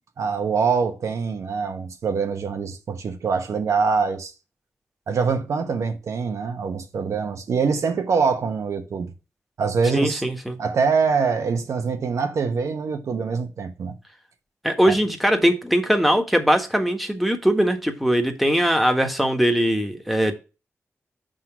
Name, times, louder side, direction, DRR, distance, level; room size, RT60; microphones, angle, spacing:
voice 1, 0.2-4.3 5.1-9.1 9.6-10.2 10.6-14.0, right 5 dB, 85° right, 1.0 m, -24 dB
voice 2, 9.9-10.6 14.6-20.3, equal, ahead, 1.4 m, -21 dB
5.9 x 3.8 x 5.9 m
cardioid pair, 60°, 5 cm